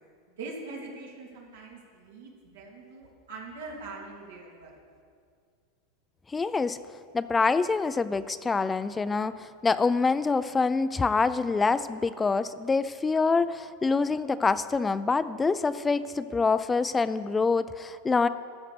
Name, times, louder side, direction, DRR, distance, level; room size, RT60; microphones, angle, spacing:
voice 1, 0.4-4.7, right 3 dB, 90° right, -2 dB, 2.8 m, -42 dB
voice 2, 6.3-6.8 7.1-18.3, left 4 dB, 15° left, 14 dB, 0.3 m, -26 dB
13.5 x 8.8 x 5.2 m, 2.2 s
supercardioid pair, 140°, 0 cm